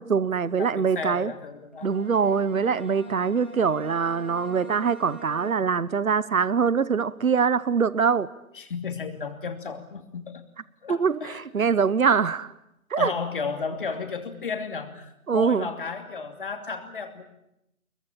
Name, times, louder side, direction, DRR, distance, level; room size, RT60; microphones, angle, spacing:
voice 1, 0.0-1.3 1.8-8.3 10.9-12.5 12.9-13.1 15.3-15.7, right 6 dB, 70° right, 19 dB, 1.1 m, -23 dB
voice 2, 0.6-1.9 8.5-10.4 10.8-11.4 13.0-17.2, left 5 dB, 35° left, 6 dB, 2.8 m, -33 dB
Bowed string instrument, 1.7-6.0, equal, 10° right, 0.9 m, -42 dB
23.5 x 22.5 x 8.8 m, 0.83 s
figure-of-eight pair, 160°, 43 cm